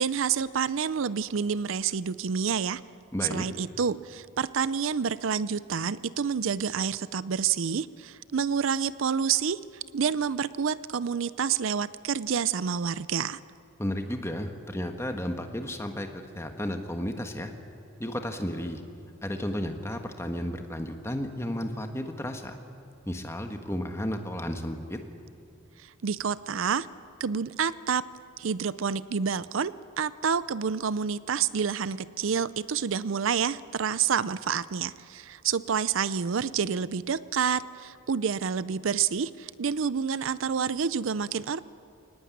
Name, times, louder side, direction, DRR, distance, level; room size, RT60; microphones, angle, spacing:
voice 1, 0.0-2.8 3.3-9.6 9.9-13.4 25.8-26.9 27.2-28.0 28.4-41.6, right 6 dB, 70° right, 17 dB, 0.5 m, -28 dB
voice 2, 3.1-3.5 13.8-17.5 18.0-18.8 19.2-22.5 23.0-25.0, left 1 dB, 15° left, 5 dB, 1.5 m, -33 dB
22.5 x 19.0 x 9.3 m, 2.4 s
head